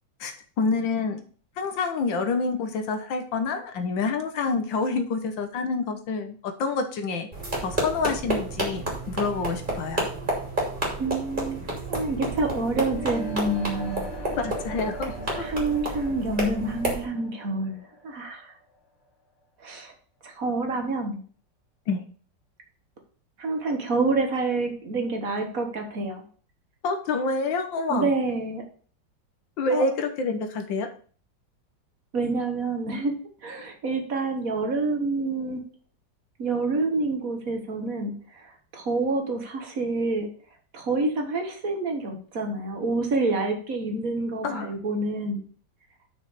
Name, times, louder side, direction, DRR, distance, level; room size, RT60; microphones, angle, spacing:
voice 1, 0.2-1.2 1.6-7.3 7.6-10.1 14.4-15.5 21.9-22.0 26.8-28.1 29.6-30.9 44.4-44.7, left 4 dB, 85° left, 6 dB, 1.8 m, -27 dB
sound 1, 7.3-17.0, right 2 dB, 25° right, 2.8 m, -30 dB
voice 2, 11.0-11.6 11.9-14.1 15.4-18.5 19.6-19.9 20.2-21.2 23.4-26.2 27.9-28.6 29.7-29.9 32.1-33.1 33.4-35.6 36.4-40.3 40.7-45.4, right 3 dB, 50° right, 3 dB, 1.9 m, -27 dB
sound 2, 12.9-18.8, equal, 65° left, 2.5 m, -40 dB
6.1 x 5.8 x 6.6 m, 0.43 s
omnidirectional pair, 2.0 m